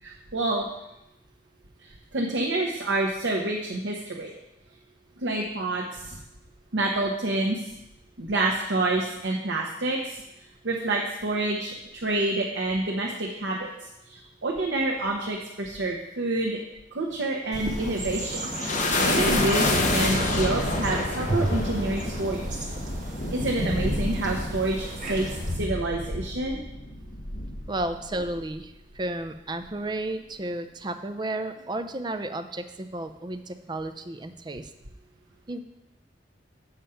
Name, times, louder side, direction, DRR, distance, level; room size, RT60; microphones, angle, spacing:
voice 1, 0.0-0.7 1.8-4.3 5.2-6.2 6.7-7.7 8.2-10.2 10.6-16.6 16.9-18.5 19.0-22.6 23.3-26.6, right 2 dB, 80° right, -1 dB, 0.9 m, -28 dB
sound 1, 17.5-25.5, right 1 dB, 45° right, 1.2 m, -35 dB
sound 2, 18.0-28.5, left 1 dB, 40° left, 1.0 m, -28 dB
voice 2, 27.7-34.7 35.5-35.6, right 1 dB, 25° right, 8 dB, 0.5 m, -33 dB
7.1 x 5.0 x 5.7 m, 0.88 s
head